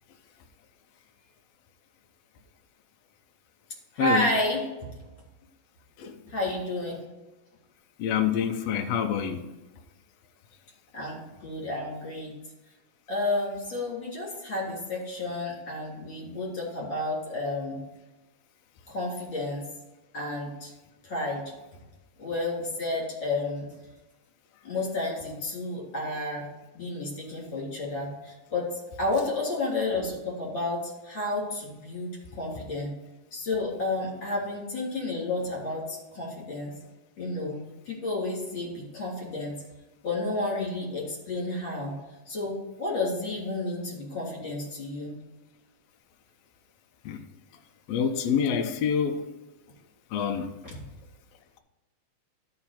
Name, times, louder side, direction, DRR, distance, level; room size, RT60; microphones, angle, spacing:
voice 1, 4.0-4.7 6.3-7.0 10.9-12.3 13.1-17.8 18.9-19.6 20.1-20.7 21.0-21.5 22.2-23.7 24.6-26.5 26.7-28.7 29.0-32.9 33.3-36.7 37.2-37.6 37.9-39.5 40.0-42.0 42.3-42.5 42.8-45.1 50.6-50.8, left 2 dB, 40° left, -5 dB, 4.1 m, -31 dB
voice 2, 8.0-9.4 47.1-47.2 47.9-49.2 50.1-50.5, left 7 dB, 70° left, 3 dB, 1.8 m, -26 dB
13.0 x 4.8 x 4.3 m, 1.1 s
omnidirectional pair, 3.4 m